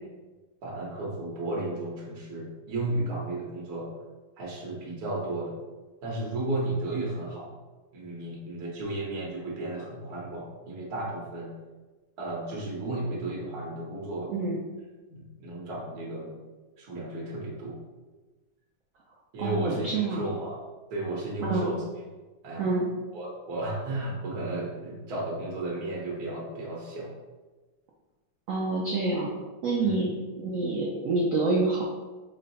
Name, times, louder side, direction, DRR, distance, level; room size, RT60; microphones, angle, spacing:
voice 1, 0.6-3.9 4.4-5.6 6.0-7.5 7.9-11.5 12.2-14.3 15.1-16.4 16.8-17.8 19.3-20.6 20.9-21.8 22.4-22.7 23.1-27.1 29.8-30.0, right 2 dB, 60° right, -4 dB, 1.3 m, -33 dB
voice 2, 19.4-20.2 21.4-21.7 22.6-22.9 28.5-29.3 29.6-30.1 30.4-31.8, right 3 dB, 85° right, -2 dB, 0.7 m, -27 dB
4.6 x 2.1 x 3.9 m, 1.2 s
omnidirectional pair, 2.1 m